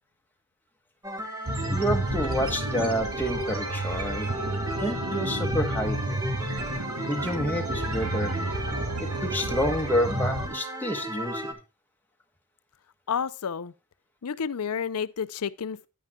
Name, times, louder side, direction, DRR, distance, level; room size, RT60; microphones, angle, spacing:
sound 1, 1.0-11.5, equal, 15° right, 1.3 m, -35 dB
sound 2, 1.5-10.5, right 1 dB, 80° right, 2.5 m, -31 dB
voice 1, 1.7-4.3 4.7-6.2 7.1-8.3 9.0-11.6, equal, 10° left, 1.2 m, -29 dB
voice 2, 13.1-13.7 14.2-15.8, left 7 dB, 85° left, 0.5 m, -30 dB
10.5 x 9.2 x 2.3 m
head